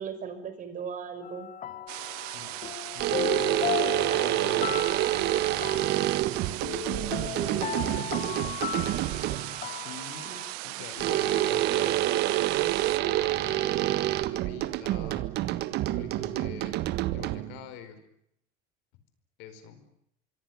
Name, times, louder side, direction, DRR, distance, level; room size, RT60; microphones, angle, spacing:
voice 1, 0.0-1.5 7.3-7.9 10.3-10.4 16.2-16.7, right 6 dB, 40° right, 10 dB, 5.6 m, -37 dB
sound 1, 1.2-10.5, left 9 dB, 40° left, 1.4 m, -36 dB
sound 2, 1.9-13.0, right 20 dB, 75° right, 1.2 m, -38 dB
voice 2, 2.9-6.1 9.8-10.3 10.6-15.3 15.9-16.8 17.1-18.0 19.4-19.8, left 8 dB, 70° left, 11 dB, 4.7 m, -45 dB
sound 3, 3.0-9.6 11.0-17.6, right 15 dB, 60° right, 1.5 m, -28 dB
26.0 x 23.5 x 7.2 m, 0.74 s
supercardioid pair, 95°, 20 cm